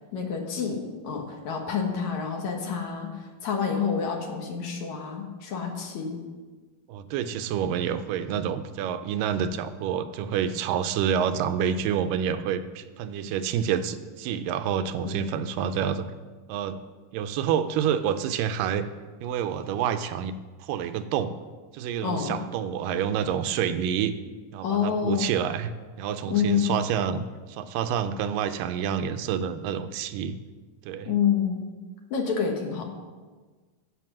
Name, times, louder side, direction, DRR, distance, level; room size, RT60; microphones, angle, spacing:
voice 1, 0.1-3.1 3.4-6.2 15.0-15.2 22.0-22.4 24.6-25.3 26.3-26.7 31.1-31.6 32.1-32.8, left 7 dB, 65° left, 2 dB, 2.5 m, -28 dB
voice 2, 6.9-16.1 16.5-16.8 17.1-18.9 19.2-20.3 20.6-21.3 21.7-24.1 24.5-25.7 26.0-30.4 30.8-31.1, right 8 dB, 85° right, 10 dB, 2.2 m, -28 dB
15.0 x 6.0 x 6.1 m, 1.4 s
omnidirectional pair, 3.9 m